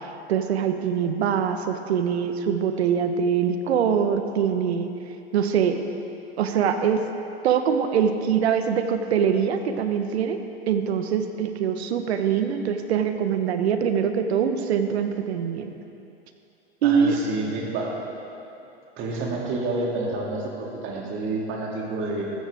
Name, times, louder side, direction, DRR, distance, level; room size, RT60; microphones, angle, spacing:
voice 1, 0.3-5.0 5.3-5.8 6.4-7.0 7.4-15.7 16.8-17.2, right 7 dB, 75° right, 7 dB, 1.2 m, -23 dB
voice 2, 16.8-18.0 19.0-22.3, right 2 dB, 35° right, -2 dB, 2.8 m, -29 dB
14.5 x 14.0 x 3.6 m, 2.7 s
hypercardioid pair, 115°, 33 cm